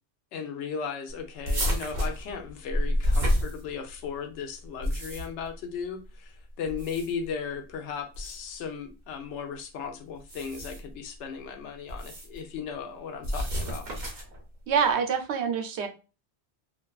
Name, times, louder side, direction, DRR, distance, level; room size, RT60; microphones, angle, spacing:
voice 1, 0.3-13.9, left 6 dB, 90° left, 0.9 m, -36 dB
sound 1, 1.4-4.1 4.6-5.5 6.6-7.3 8.1-8.4 10.2-10.9 11.9-12.4 13.2-14.4, equal, 45° right, 0.8 m, -29 dB
voice 2, 14.7-15.9, right 6 dB, 75° right, 0.8 m, -26 dB
2.5 x 2.3 x 2.3 m
omnidirectional pair, 1.1 m